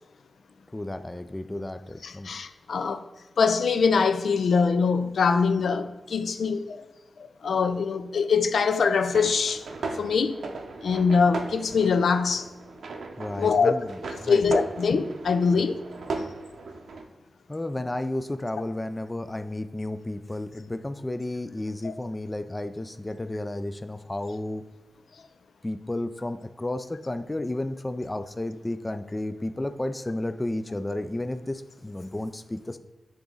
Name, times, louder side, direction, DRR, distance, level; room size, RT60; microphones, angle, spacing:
voice 1, 0.7-2.3 13.2-14.4 17.5-24.6 25.6-32.8, left 1 dB, 15° left, 0.3 m, -32 dB
voice 2, 2.0-3.0 3.4-6.8 7.4-9.6 9.9-10.5 10.8-12.5 13.4-13.7 14.3-15.8 21.8-21.9, left 5 dB, 80° left, 0.4 m, -23 dB
sound 1, 9.1-17.0, right 3 dB, 80° right, 0.8 m, -37 dB
10.0 x 3.7 x 3.9 m
wide cardioid pair, 155°, 0 cm